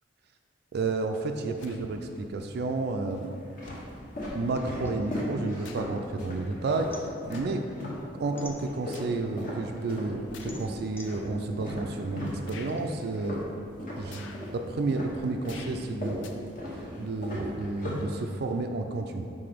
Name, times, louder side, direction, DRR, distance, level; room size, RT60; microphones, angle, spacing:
voice 1, 0.7-3.4 4.3-7.7 8.2-13.5 13.9-16.2 16.7-19.2, right 3 dB, 55° right, 5 dB, 0.4 m, -31 dB
sound 1, 1.5-2.2 2.9-8.1 8.3-14.6 14.9-18.6, left 1 dB, 45° left, 1.2 m, -37 dB
sound 2, 1.6-1.8 2.9-3.0 3.6-3.9 5.1-6.0 6.4-6.6 7.2-7.6 8.1-9.2 10.3-10.6 11.3-11.4 12.4-12.8 14.0-14.5 15.4-15.8 16.2-16.3, left 5 dB, 75° left, 0.5 m, -48 dB
sound 3, 4.8-6.3 6.6-9.2 9.6-12.8, left 1 dB, 10° left, 0.4 m, -50 dB
5.9 x 3.8 x 5.0 m, 2.7 s
head